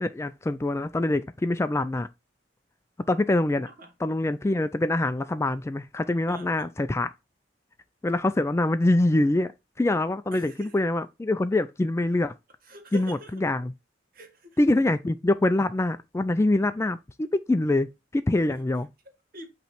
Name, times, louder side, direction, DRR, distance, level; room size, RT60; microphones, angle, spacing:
voice 1, 0.0-2.1 3.1-3.7 4.0-7.1 8.0-9.5 9.8-12.3 12.9-13.7 14.6-17.9 18.1-18.9, left 2 dB, 15° left, 0.3 m, -24 dB
voice 2, 6.3-6.7 10.3-10.8 12.6-13.3 14.1-14.6 18.4-18.6 19.0-19.5, right 2 dB, 55° right, 1.6 m, -45 dB
8.1 x 3.1 x 4.4 m
head